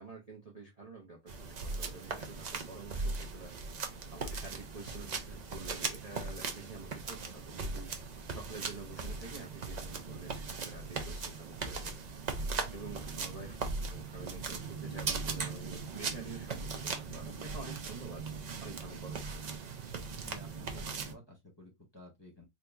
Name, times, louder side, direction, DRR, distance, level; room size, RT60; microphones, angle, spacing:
voice 1, 0.0-3.6 4.1-8.0 8.3-11.9 12.7-13.6 13.9-18.3 18.6-19.7, right 3 dB, 35° right, 0.6 m, -48 dB
sound 1, 1.3-21.1, right 4 dB, 75° right, 0.4 m, -39 dB
voice 2, 20.1-22.4, left 2 dB, 20° left, 0.9 m, -53 dB
3.8 x 2.8 x 2.3 m
omnidirectional pair, 1.6 m